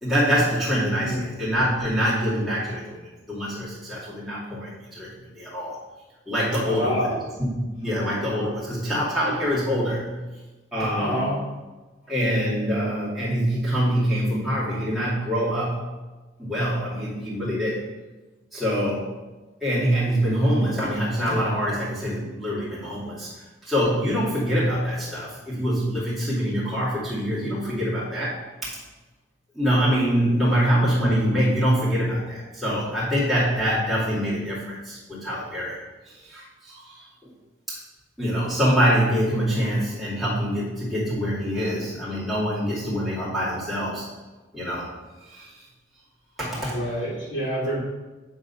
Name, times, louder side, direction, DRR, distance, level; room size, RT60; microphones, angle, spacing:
voice 1, 0.0-3.0 3.3-5.1 5.3-5.8 6.3-7.1 7.4-10.1 10.7-11.3 12.1-15.8 16.4-17.8 18.5-19.1 19.6-23.3 23.6-28.8 29.5-35.8 36.1-37.0 38.2-44.0 44.5-44.9 45.3-45.6 46.4-46.9, equal, ahead, -10 dB, 2.4 m, -25 dB
voice 2, 6.6-7.2 11.0-11.4 30.2-30.5 46.7-47.8, equal, 65° left, -7 dB, 2.4 m, -27 dB
8.0 x 3.8 x 5.5 m, 1.2 s
head